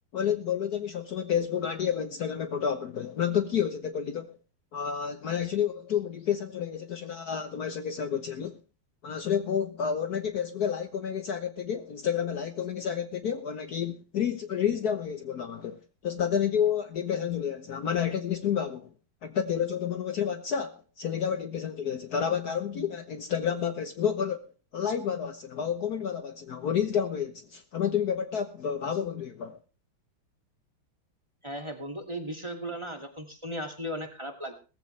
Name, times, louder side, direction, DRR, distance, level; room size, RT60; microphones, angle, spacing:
voice 1, 0.1-4.4 4.7-8.6 9.0-18.9 19.2-29.6, left 8 dB, 55° left, 1.4 m, -30 dB
voice 2, 31.4-34.5, equal, 15° right, 2.3 m, -36 dB
18.0 x 15.0 x 3.3 m
omnidirectional pair, 2.1 m